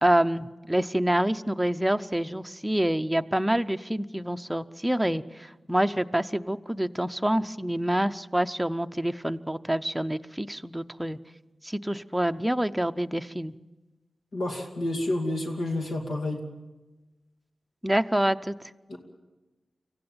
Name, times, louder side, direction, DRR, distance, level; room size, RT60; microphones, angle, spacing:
voice 1, 0.0-11.2 11.6-13.5 17.8-18.6, right 1 dB, 5° right, 9 dB, 0.7 m, -27 dB
voice 2, 14.3-16.4 18.9-19.0, left 1 dB, 80° left, 1 dB, 2.5 m, -29 dB
25.5 x 15.5 x 8.9 m, 1.2 s
wide cardioid pair, 85°, 0 cm